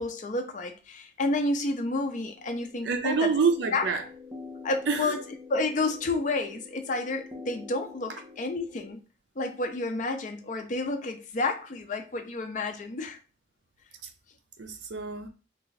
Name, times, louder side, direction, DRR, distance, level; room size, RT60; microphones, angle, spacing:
voice 1, 0.0-3.3 3.7-3.9 4.6-5.2 5.5-9.0 9.4-13.2, left 2 dB, 40° left, 0.5 m, -30 dB
sound 1, 2.3-8.9, left 4 dB, 10° right, 0.6 m, -47 dB
voice 2, 2.8-4.0 4.9-5.1 14.6-15.3, right 5 dB, 70° right, 0.6 m, -26 dB
3.2 x 2.4 x 3.9 m
head